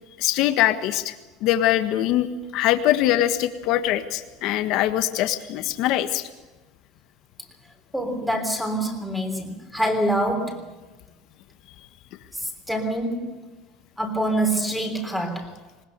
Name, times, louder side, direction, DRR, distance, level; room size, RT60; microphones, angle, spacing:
voice 1, 0.2-1.1 1.4-6.2, left 13 dB, 60° left, 1.5 m, -22 dB
voice 2, 7.9-10.7 12.7-13.4 14.0-15.5, right 1 dB, ahead, 3.5 m, -25 dB
20.0 x 20.0 x 6.8 m
cardioid pair, 140°, 0 cm